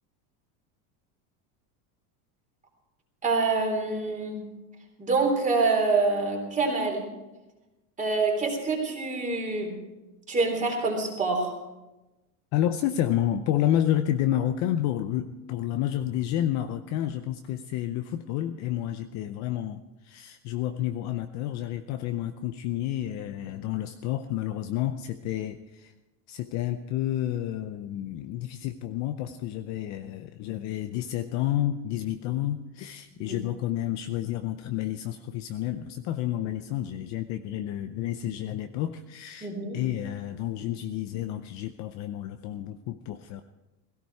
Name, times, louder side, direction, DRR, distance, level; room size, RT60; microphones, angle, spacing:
voice 1, 3.2-4.4 5.0-7.1 8.0-9.8 10.3-11.5 33.1-33.4 39.4-39.8, right 3 dB, 15° right, 1 dB, 3.5 m, -26 dB
voice 2, 12.5-25.9 26.3-43.4, left 12 dB, 40° left, 8 dB, 0.6 m, -30 dB
17.0 x 16.5 x 4.7 m, 1.0 s
cardioid pair, 170°, 46 cm